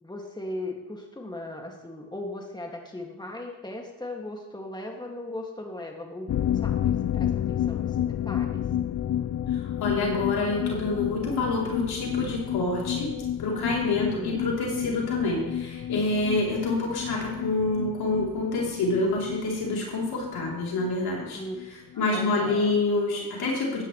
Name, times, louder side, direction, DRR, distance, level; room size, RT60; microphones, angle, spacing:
voice 1, 0.0-6.3 6.6-8.6 14.0-14.5 21.3-21.6 21.9-22.8, left 1 dB, 10° left, 1 dB, 2.3 m, -38 dB
sound 1, 6.3-21.7 21.9-22.0 22.3-22.4, left 10 dB, 45° left, 0.5 m, -31 dB
voice 2, 9.5-13.1 13.4-21.4 22.0-23.8, left 2 dB, 75° left, -3 dB, 3.7 m, -27 dB
15.0 x 10.0 x 3.3 m, 1.1 s
supercardioid pair, 50°, 38 cm